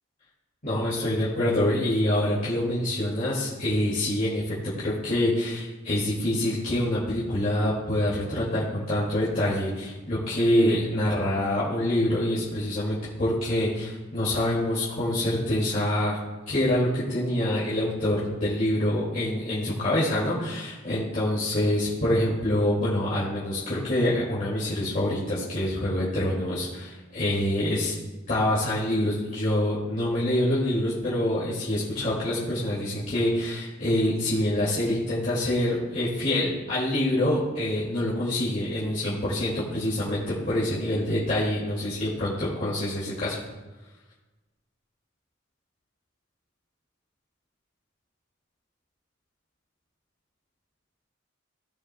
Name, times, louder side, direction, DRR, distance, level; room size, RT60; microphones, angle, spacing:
voice 1, 0.6-16.2 16.5-27.9 28.3-43.4, left 1 dB, 40° left, -9 dB, 2.4 m, -26 dB
17.5 x 6.6 x 2.3 m, 1.2 s
head